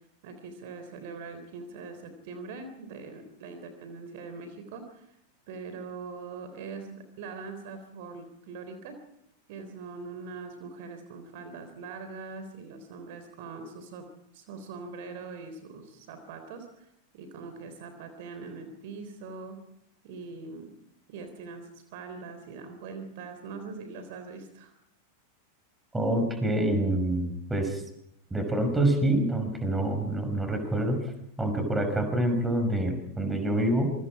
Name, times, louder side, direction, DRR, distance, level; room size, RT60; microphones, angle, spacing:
voice 1, 0.2-5.1 5.5-9.0 9.5-14.1 14.3-16.9 17.1-19.6 20.0-20.8 21.1-24.7, right 4 dB, 50° right, 8 dB, 3.6 m, -42 dB
voice 2, 25.9-27.8 28.3-31.0 31.4-33.9, right 1 dB, 10° right, 6 dB, 5.6 m, -26 dB
27.0 x 24.0 x 4.9 m, 0.79 s
figure-of-eight pair, 90°, 0 cm